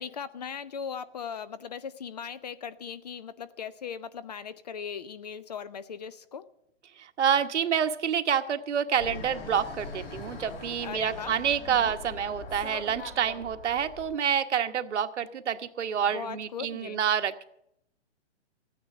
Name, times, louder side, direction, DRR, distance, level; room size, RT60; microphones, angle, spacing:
voice 1, 0.0-6.5 10.8-11.4 11.7-12.0 16.0-17.0, left 7 dB, 35° left, 0.5 m, -38 dB
voice 2, 7.0-17.4, right 8 dB, 80° right, 1.2 m, -28 dB
Fixed-wing aircraft airplane, 9.0-14.1, left 4 dB, 55° left, 5.9 m, -42 dB
14.5 x 9.5 x 7.0 m
hypercardioid pair, 165°, 35 cm